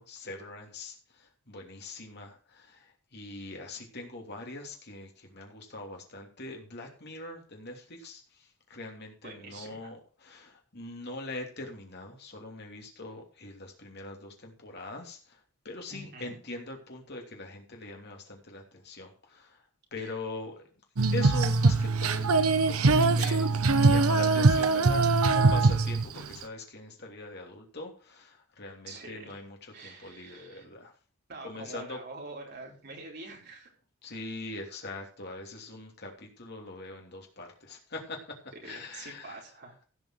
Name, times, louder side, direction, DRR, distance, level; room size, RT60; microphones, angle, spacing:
voice 1, 0.0-8.2 8.7-15.4 15.6-19.6 19.9-20.7 21.1-22.4 22.7-30.9 31.4-32.0 34.0-38.2 38.6-39.4, left 2 dB, 45° left, 2 dB, 3.0 m, -42 dB
voice 2, 9.2-9.9 15.9-16.3 20.0-20.2 28.8-29.4 29.7-30.7 31.3-33.7 38.6-39.7, right 2 dB, 50° right, -1 dB, 4.7 m, -45 dB
Female singing, 21.0-26.4, right 3 dB, 75° right, 0.9 m, -22 dB
16.0 x 5.4 x 6.2 m, 0.39 s
head